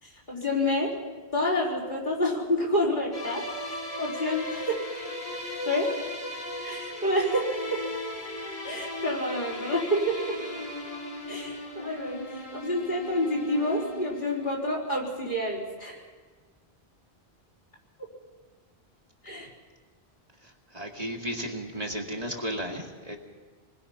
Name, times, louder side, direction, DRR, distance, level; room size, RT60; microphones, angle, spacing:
voice 1, 0.0-1.0 1.3-4.9 5.7-6.0 6.6-7.8 8.6-10.4 11.3-16.0 19.2-19.5, left 1 dB, 50° left, -4 dB, 4.6 m, -28 dB
sound 1, 3.1-15.0, left 1 dB, 35° left, 3.4 m, -37 dB
voice 2, 20.4-23.2, equal, 35° right, 1 dB, 2.2 m, -34 dB
27.5 x 20.5 x 5.8 m, 1.4 s
omnidirectional pair, 1.1 m